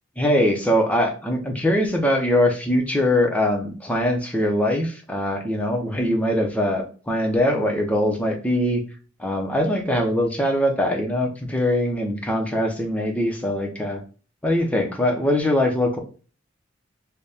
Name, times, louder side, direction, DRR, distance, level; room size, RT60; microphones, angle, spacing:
voice 1, 0.2-8.8 9.2-14.0 14.4-16.0, left 1 dB, 5° left, 2 dB, 0.7 m, -22 dB
4.1 x 2.2 x 3.4 m, 0.38 s
head